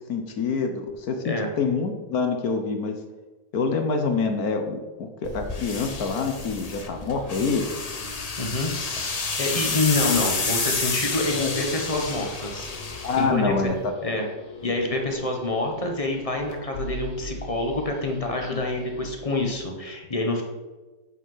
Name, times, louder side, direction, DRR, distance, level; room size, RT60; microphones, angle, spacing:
voice 1, 0.0-3.0 3.5-7.8 11.3-11.6 13.0-13.8 18.5-18.6, left 4 dB, 60° left, 6 dB, 1.3 m, -26 dB
sound 1, 5.2-13.9, left 4 dB, 40° left, 0.5 m, -30 dB
sound 2, 6.4-19.6, equal, 80° left, 2.1 m, -43 dB
voice 2, 8.4-8.7 9.0-13.7 14.0-14.3 14.6-20.4, left 2 dB, 20° left, 2 dB, 1.1 m, -27 dB
8.4 x 5.5 x 5.6 m, 1.2 s
omnidirectional pair, 1.9 m